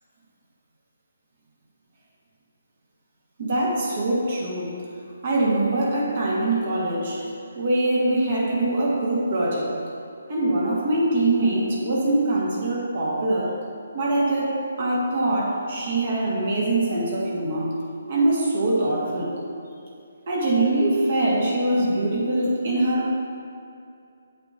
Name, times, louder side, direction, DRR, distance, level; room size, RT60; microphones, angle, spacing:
voice 1, 3.4-4.8 5.2-7.2 7.6-9.7 10.3-13.6 13.9-17.7 18.1-19.3 20.3-23.2, right 1 dB, 50° right, -5 dB, 1.9 m, -23 dB
8.6 x 7.3 x 2.9 m, 2.5 s
hypercardioid pair, 160°, 0 cm